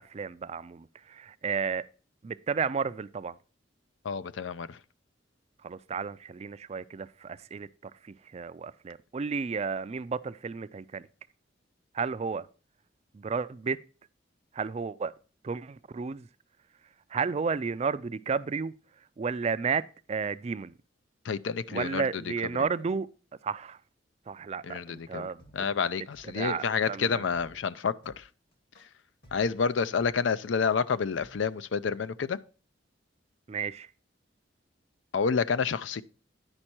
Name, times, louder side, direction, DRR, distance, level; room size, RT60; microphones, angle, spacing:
voice 1, 0.0-1.9 2.2-3.3 5.6-11.1 11.9-12.5 13.1-13.8 14.5-15.1 15.4-16.3 17.1-18.7 19.2-20.7 21.7-23.1 23.4-23.8 24.3-25.4 26.3-27.2 33.5-33.9, right 5 dB, 35° right, 0.3 m, -32 dB
voice 2, 4.0-4.8 21.2-22.2 22.6-22.7 24.6-25.3 25.5-28.3 29.3-32.4 35.1-36.0, left 5 dB, 80° left, 0.5 m, -29 dB
sound 1, 25.4-31.6, equal, 60° left, 1.8 m, -57 dB
9.8 x 5.4 x 4.4 m
head